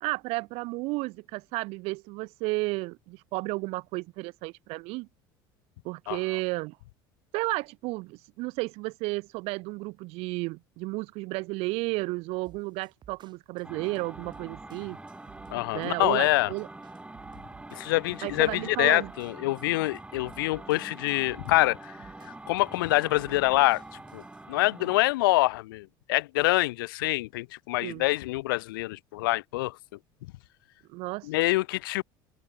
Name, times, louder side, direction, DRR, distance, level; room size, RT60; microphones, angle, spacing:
voice 1, 0.0-5.1 5.8-6.8 7.3-15.0 15.7-16.7 18.2-19.1 24.8-24.9 27.8-28.1 30.9-31.3, right 23 dB, 65° right, 0.4 m, -33 dB
sound 1, 12.5-24.4, right 9 dB, 40° right, 5.6 m, -55 dB
sound 2, 13.6-25.1, right 2 dB, 10° right, 3.4 m, -45 dB
voice 2, 15.5-16.5 17.7-21.8 22.2-23.8 24.1-24.2 24.5-29.8 31.2-32.0, left 19 dB, 85° left, 0.7 m, -26 dB
supercardioid pair, 85°, 11 cm